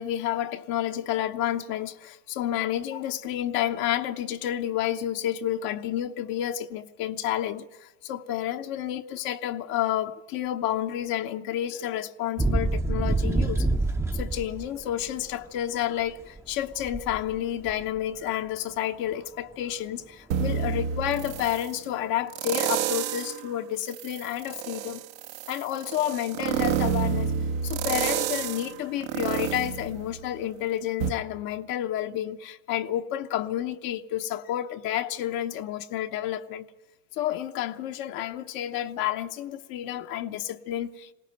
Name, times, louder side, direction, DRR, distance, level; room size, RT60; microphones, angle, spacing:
voice 1, 0.0-13.7 14.1-25.0 25.5-27.3 27.6-36.7 37.1-41.1, left 12 dB, 55° left, 1.0 m, -30 dB
sound 1, 12.4-14.8 15.0-15.1 16.4-16.5 16.8-17.3 17.7-17.8, right 2 dB, 5° right, 0.7 m, -26 dB
sound 2, 20.3-21.7 22.3-23.4 23.9-30.6 31.0-31.1, right 8 dB, 75° right, 1.3 m, -29 dB
20.5 x 17.5 x 9.0 m
hypercardioid pair, 100°, 41 cm